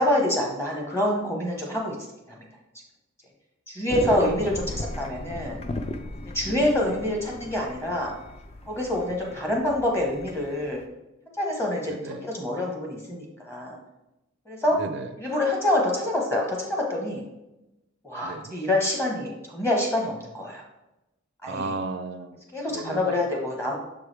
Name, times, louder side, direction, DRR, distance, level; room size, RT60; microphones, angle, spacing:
voice 1, 0.0-2.0 3.7-5.6 6.3-8.1 8.7-10.8 11.4-13.8 14.5-14.8 15.2-17.2 18.0-20.6 21.4-21.7 22.5-23.8, left 1 dB, 15° left, -1 dB, 0.9 m, -26 dB
sound 1, 3.9-10.8, left 2 dB, 30° left, 0.4 m, -37 dB
voice 2, 4.0-4.4 6.5-6.8 11.9-12.2 14.7-15.1 18.2-18.6 21.5-22.4 22.7-23.2, right 3 dB, 60° right, 8 dB, 0.4 m, -34 dB
6.4 x 4.7 x 3.3 m, 0.94 s
head